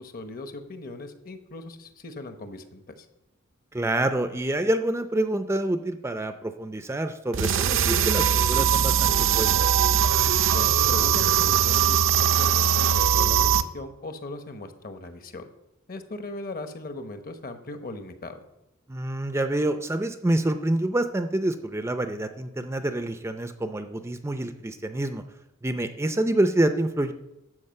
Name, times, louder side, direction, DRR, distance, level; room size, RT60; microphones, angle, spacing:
voice 1, 0.0-3.1 10.5-15.5 15.9-18.4, left 2 dB, 45° left, 8 dB, 1.0 m, -38 dB
voice 2, 3.7-9.5 18.9-25.2 25.6-27.1, right 1 dB, 15° right, 8 dB, 0.5 m, -27 dB
sound 1, 7.3-13.6, right 9 dB, 65° right, 0.6 m, -21 dB
12.5 x 5.1 x 7.6 m, 0.91 s
head